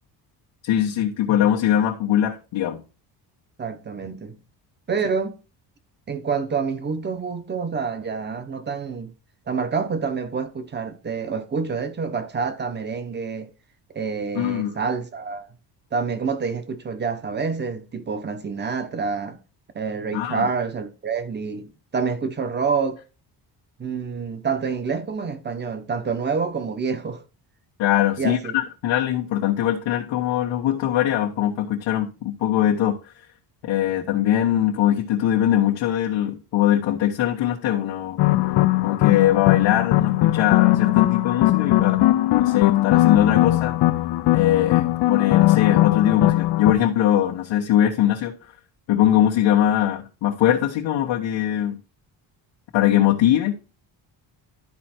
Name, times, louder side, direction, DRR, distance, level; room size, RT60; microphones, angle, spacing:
voice 1, 0.6-2.8 14.3-14.8 20.1-20.5 27.8-33.0 33.6-38.2 38.8-42.0 42.4-43.8 44.3-48.3 48.9-51.8 52.7-53.5, left 11 dB, 85° left, 1.3 m, -21 dB
voice 2, 3.6-4.4 4.9-5.4 6.1-9.1 9.5-13.5 13.9-15.5 15.9-19.4 19.7-23.0 23.8-27.2 28.2-28.5, right 5 dB, 25° right, 1.0 m, -27 dB
sound 1, 38.2-46.7, left 16 dB, 65° left, 0.7 m, -19 dB
12.0 x 4.4 x 4.4 m
cardioid pair, 160°, 43 cm